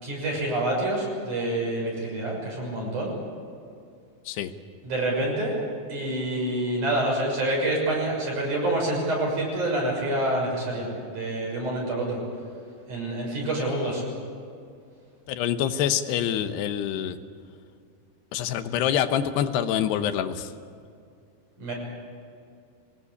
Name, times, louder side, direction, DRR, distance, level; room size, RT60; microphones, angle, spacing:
voice 1, 0.0-3.1 4.8-5.6 5.9-12.2 12.9-14.1 21.6-21.7, right 1 dB, 45° right, -2 dB, 7.7 m, -27 dB
voice 2, 15.3-17.2 18.3-20.5, left 10 dB, 80° left, 9 dB, 3.1 m, -26 dB
25.0 x 19.0 x 8.5 m, 2.4 s
omnidirectional pair, 4.8 m